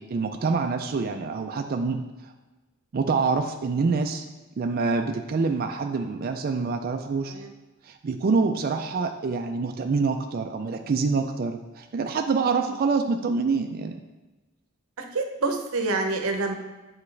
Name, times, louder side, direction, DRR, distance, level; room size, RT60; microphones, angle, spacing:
voice 1, 0.0-2.3 2.9-4.3 4.6-7.3 7.8-13.9, right 4 dB, 45° right, 5 dB, 0.4 m, -26 dB
voice 2, 15.0-16.5, right 3 dB, 80° right, 4 dB, 0.8 m, -27 dB
8.3 x 4.8 x 3.3 m, 1.1 s
head